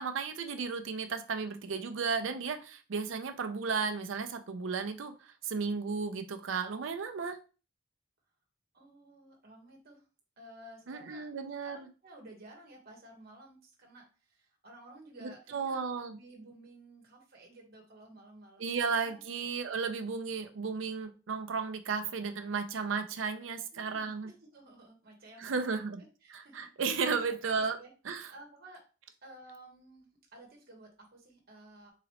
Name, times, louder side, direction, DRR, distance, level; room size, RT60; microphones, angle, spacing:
voice 1, 0.0-7.4 10.9-11.9 15.2-16.2 18.6-24.3 25.4-26.0 26.3-27.8 28.1-28.3, right 5 dB, 70° right, 7 dB, 0.5 m, -34 dB
voice 2, 8.7-10.0 10.4-11.3 11.6-18.7 19.0-19.2 23.7-27.1 27.5-27.9 28.3-28.8 29.2-31.9, right 1 dB, 50° right, 1 dB, 1.2 m, -54 dB
3.8 x 3.0 x 3.0 m, 0.34 s
head